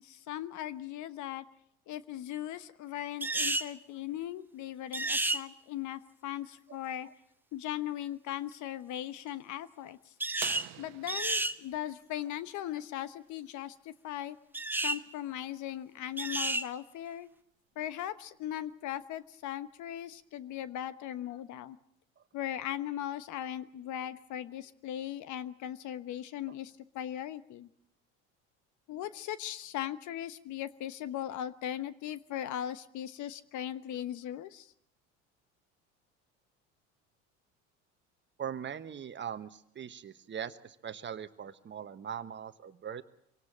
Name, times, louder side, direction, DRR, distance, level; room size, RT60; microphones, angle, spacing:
voice 1, 0.0-1.4 1.9-7.1 7.5-10.0 10.8-14.4 14.8-17.3 17.8-21.8 22.3-27.7 28.9-34.7, left 11 dB, 55° left, 14 dB, 1.2 m, -38 dB
sound 1, 3.2-3.7 4.9-5.4 10.2-10.7 11.1-11.6 14.5-15.0 16.2-16.7, right 2 dB, 5° right, 0.9 m, -31 dB
sound 2, 10.4-12.9 14.8-14.9 17.1-17.2 18.9-19.2 20.0-20.1, right 16 dB, 65° right, 1.3 m, -46 dB
voice 2, 38.4-43.0, right 8 dB, 35° right, 11 dB, 1.2 m, -41 dB
24.5 x 18.0 x 7.5 m, 0.73 s
hypercardioid pair, 80°, 34 cm